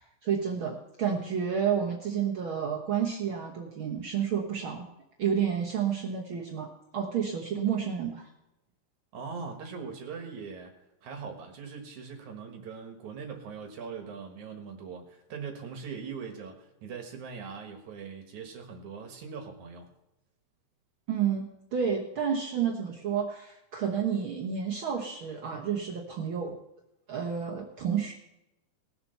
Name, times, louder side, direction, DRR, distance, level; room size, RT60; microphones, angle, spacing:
voice 1, 0.0-4.9 5.2-8.3 21.1-26.5 27.1-28.1, right 7 dB, 85° right, -1 dB, 1.1 m, -30 dB
voice 2, 9.1-10.7 11.0-19.9, right 5 dB, 60° right, 4 dB, 2.6 m, -41 dB
19.5 x 7.1 x 5.6 m, 0.93 s
omnidirectional pair, 4.2 m